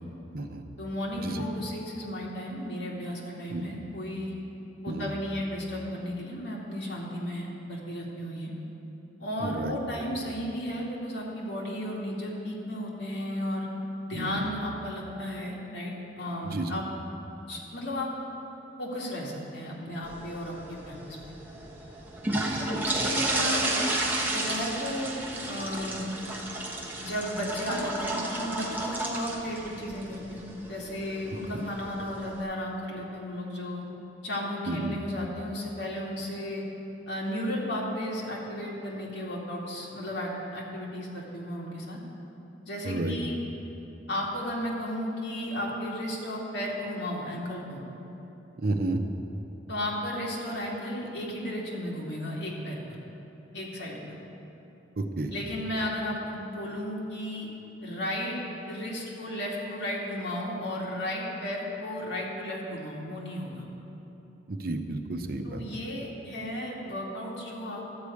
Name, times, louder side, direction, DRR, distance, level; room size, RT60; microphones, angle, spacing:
voice 1, 0.8-4.3 4.8-8.5 9.2-13.7 14.1-16.9 17.5-18.1 18.8-21.2 23.0-23.9 24.3-25.1 25.4-26.1 27.0-33.8 34.2-36.6 37.1-42.0 42.7-43.4 44.1-47.8 49.7-53.0 53.5-54.2 55.3-57.5 57.8-58.4 58.7-63.6 65.4-67.9, left 1 dB, 80° left, -3 dB, 2.0 m, -34 dB
voice 2, 9.4-10.1 14.1-14.5 16.4-16.7 22.3-23.1 34.7-34.9 42.8-43.2 48.6-49.0 55.0-55.3 64.5-65.6, right 2 dB, 55° right, 6 dB, 0.7 m, -32 dB
sound 1, 20.0-32.4, right 1 dB, 10° right, 1.0 m, -32 dB
12.5 x 5.0 x 8.3 m, 3.0 s
head